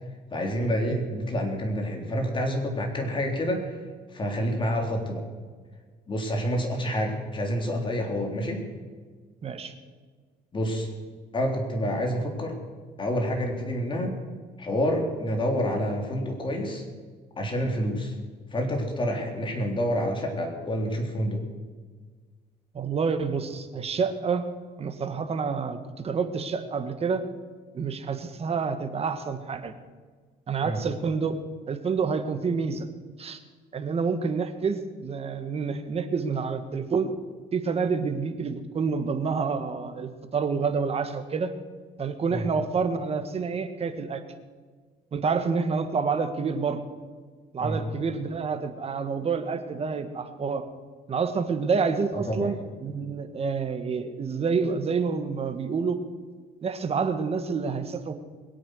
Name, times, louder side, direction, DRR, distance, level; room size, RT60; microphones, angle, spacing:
voice 1, 0.3-3.8 4.1-5.2 6.1-8.6 10.5-10.9 11.3-12.6 13.0-14.1 14.6-16.8 17.4-18.1 18.5-21.4 30.6-30.8 42.3-42.4 47.6-47.8 52.3-52.5, equal, 30° left, 2 dB, 3.6 m, -28 dB
voice 2, 9.4-9.7 22.7-24.4 24.8-27.2 27.7-29.7 30.5-31.4 31.7-32.9 33.2-33.4 33.7-37.1 37.5-41.5 42.0-44.2 45.1-46.8 47.5-50.6 51.1-56.0 56.6-58.1, right 5 dB, 35° right, 8 dB, 1.6 m, -28 dB
22.0 x 8.6 x 6.5 m, 1.5 s
cardioid pair, 110°, 17 cm